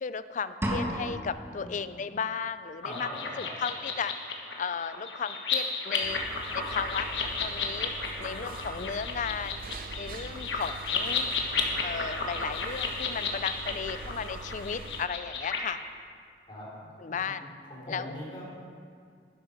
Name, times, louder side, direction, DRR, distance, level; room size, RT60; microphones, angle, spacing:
voice 1, 0.0-3.1 3.4-4.1 4.6-6.2 6.5-7.9 8.2-9.6 10.0-11.3 11.8-15.8 17.0-17.4 17.9-18.1, left 6 dB, 45° left, 13 dB, 0.4 m, -35 dB
sound 1, 0.6-1.6, equal, 15° right, 1.3 m, -31 dB
voice 2, 1.5-1.8 2.8-3.5 16.5-17.4 17.7-18.5, left 1 dB, 30° left, -6 dB, 3.7 m, -42 dB
sound 2, 2.8-15.6, left 5 dB, 85° left, 1.4 m, -33 dB
sound 3, 6.0-15.1, right 3 dB, 55° right, 0.6 m, -43 dB
12.0 x 11.0 x 5.0 m, 2.2 s
head